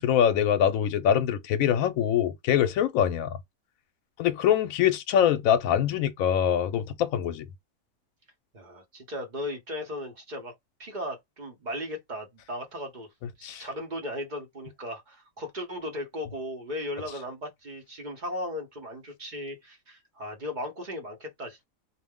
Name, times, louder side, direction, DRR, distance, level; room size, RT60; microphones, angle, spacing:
voice 1, 0.0-3.4 4.2-7.5 13.4-13.7, left 9 dB, 75° left, 0.9 m, -24 dB
voice 2, 8.5-10.5 10.8-13.1 13.4-21.7, left 1 dB, 40° right, 0.7 m, -36 dB
2.5 x 2.1 x 3.5 m
omnidirectional pair, 1.5 m